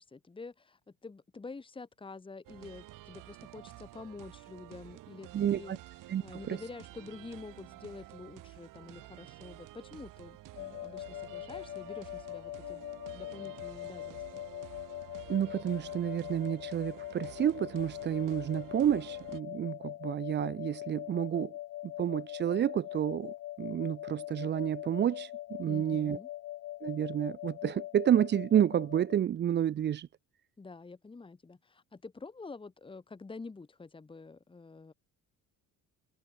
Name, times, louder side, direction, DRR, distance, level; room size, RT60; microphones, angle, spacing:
voice 1, 0.0-5.8 6.2-12.8 13.1-14.4 25.6-26.3 30.6-34.9, left 4 dB, 15° left, 3.0 m, -47 dB
sound 1, 2.4-19.4, right 16 dB, 65° right, 1.1 m, -51 dB
voice 2, 5.3-5.8 6.1-6.2 6.5-6.6 15.3-21.5 21.8-26.2 26.8-30.1, right 10 dB, 30° right, 0.5 m, -30 dB
sound 2, 10.6-29.2, left 14 dB, 40° left, 0.4 m, -42 dB
cardioid pair, 165°, 35 cm